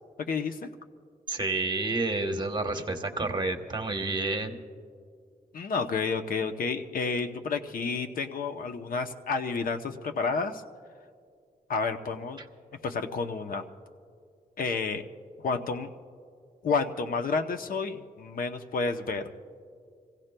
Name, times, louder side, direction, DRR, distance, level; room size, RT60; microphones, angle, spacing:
voice 1, 0.2-0.7 5.5-10.6 11.7-12.4 12.8-13.6 14.6-15.0 15.4-15.9 16.6-19.2, left 4 dB, 65° left, 7 dB, 0.8 m, -30 dB
voice 2, 1.3-4.5, right 2 dB, 30° right, 4 dB, 1.1 m, -29 dB
28.5 x 16.0 x 2.2 m, 2.2 s
wide cardioid pair, 130°, 16 cm